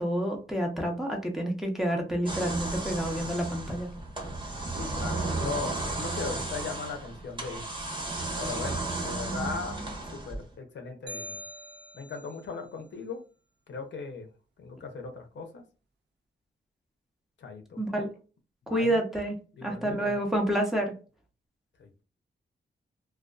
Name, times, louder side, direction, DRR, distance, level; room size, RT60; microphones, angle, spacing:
voice 1, 0.0-3.9 17.8-18.1 18.7-20.9, right 1 dB, ahead, 0 dB, 0.7 m, -29 dB
sound 1, 2.3-10.5, right 2 dB, 25° right, 1.0 m, -34 dB
voice 2, 4.7-7.7 8.4-9.8 10.1-11.4 11.9-13.2 13.7-14.3 14.6-15.6 17.4-17.8 18.7-19.0 19.6-20.2 21.8-22.0, left 4 dB, 75° left, 5 dB, 0.6 m, -38 dB
sound 2, 11.1-12.4, left 1 dB, 65° right, 0.5 m, -43 dB
2.4 x 2.3 x 2.3 m, 0.34 s
cardioid pair, 85°, 19 cm